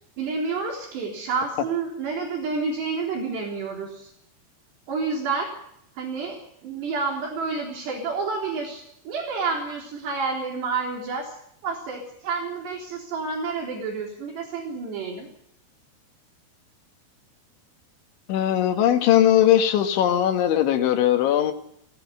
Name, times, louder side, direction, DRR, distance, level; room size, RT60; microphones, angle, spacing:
voice 1, 0.2-4.1 4.9-5.5 6.0-11.3 11.6-15.3, right 4 dB, 65° right, 0 dB, 5.7 m, -29 dB
voice 2, 18.3-21.5, left 11 dB, 85° left, 7 dB, 4.2 m, -19 dB
19.0 x 17.5 x 9.6 m, 0.71 s
omnidirectional pair, 5.3 m